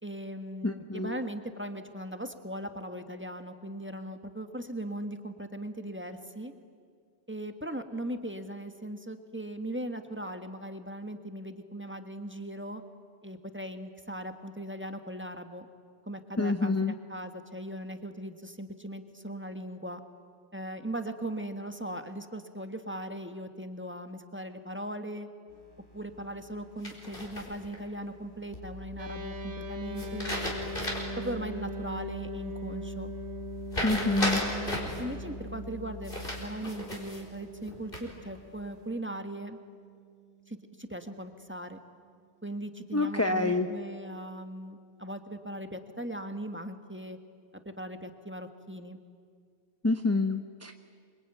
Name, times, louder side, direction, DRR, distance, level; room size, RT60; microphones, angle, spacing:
voice 1, 0.0-6.5 7.3-12.8 13.2-15.6 16.0-20.0 20.5-25.3 25.9-30.4 31.2-33.1 33.8-39.6 40.5-41.8 42.4-47.2 47.6-49.0, right 1 dB, 10° right, 7 dB, 1.5 m, -39 dB
voice 2, 0.6-1.2 16.4-16.9 33.8-34.4 42.9-43.7 49.8-50.7, left 3 dB, 15° left, 6 dB, 0.8 m, -27 dB
sound 1, 25.5-38.8, left 3 dB, 75° left, 5.4 m, -46 dB
sound 2, 26.8-27.8 30.0-31.2 31.6-31.7 33.7-35.0 36.0-37.2 37.7-38.3, left 1 dB, 50° left, 4.6 m, -34 dB
sound 3, 29.0-40.5, right 1 dB, 80° right, 1.9 m, -42 dB
27.0 x 24.0 x 9.2 m, 2.1 s
omnidirectional pair, 1.2 m